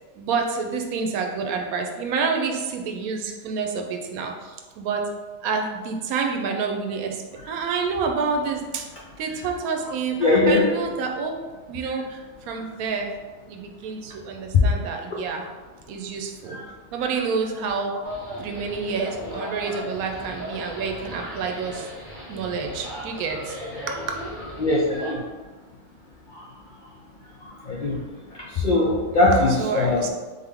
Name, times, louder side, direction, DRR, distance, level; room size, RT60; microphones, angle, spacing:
voice 1, 0.1-5.1 5.4-8.9 9.2-11.4 11.7-13.2 13.5-15.5 15.9-16.6 16.9-18.0 18.4-24.2 29.3-30.1, right 5 dB, 80° right, 3 dB, 1.0 m, -28 dB
voice 2, 10.2-10.6 14.5-14.6 24.6-25.2 27.4-28.0 28.5-30.1, left 2 dB, 60° left, -4 dB, 0.5 m, -20 dB
sound 1, 18.0-25.1, equal, 35° left, 1.3 m, -37 dB
3.6 x 3.6 x 3.3 m, 1.3 s
omnidirectional pair, 1.5 m